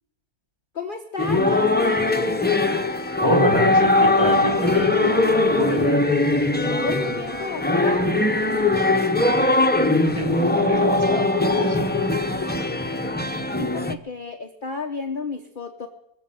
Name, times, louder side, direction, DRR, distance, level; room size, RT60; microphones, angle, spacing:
voice 1, 0.7-2.2 6.7-8.1 13.6-15.9, left 4 dB, 35° left, 4 dB, 1.1 m, -32 dB
sound 1, 1.2-13.9, left 2 dB, 15° left, 0.3 m, -20 dB
voice 2, 3.2-6.0 10.2-11.9, equal, 15° right, -1 dB, 3.5 m, -26 dB
22.5 x 7.6 x 7.7 m, 0.80 s
omnidirectional pair, 1.7 m